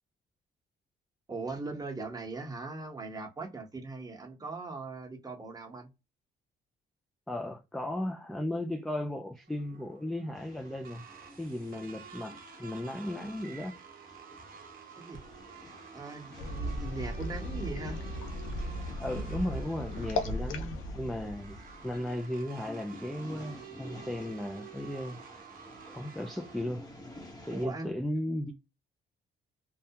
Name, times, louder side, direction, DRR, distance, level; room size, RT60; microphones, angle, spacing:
voice 1, 1.3-5.9 15.0-15.2 15.9-18.0 27.5-27.9, right 3 dB, 20° right, 0.9 m, -40 dB
voice 2, 7.3-11.1 11.4-13.8 19.0-21.6 21.8-25.2 25.9-26.9 27.5-28.5, left 1 dB, ahead, 0.3 m, -36 dB
sound 1, 9.5-26.6, right 7 dB, 45° right, 0.7 m, -51 dB
sound 2, 10.3-27.7, left 1 dB, 20° left, 0.9 m, -52 dB
sound 3, 16.4-22.2, left 1 dB, 85° left, 0.5 m, -36 dB
2.2 x 2.1 x 2.7 m
cardioid pair, 90°, 20 cm